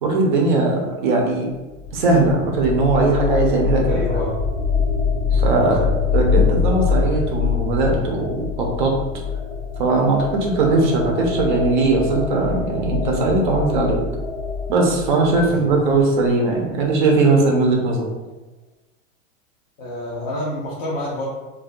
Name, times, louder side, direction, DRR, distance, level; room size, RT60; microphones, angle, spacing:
voice 1, 0.0-1.5 1.9-3.8 5.3-5.9 6.1-8.9 9.8-14.0 14.7-18.1, right 3 dB, 40° right, 0 dB, 0.5 m, -19 dB
sound 1, 1.7-16.3, left 5 dB, 65° left, 0.8 m, -24 dB
voice 2, 3.9-4.4 5.6-5.9 15.4-16.1 19.8-21.2, left 1 dB, 40° left, -5 dB, 0.4 m, -29 dB
2.3 x 2.2 x 2.5 m, 1.1 s
supercardioid pair, 175°, 38 cm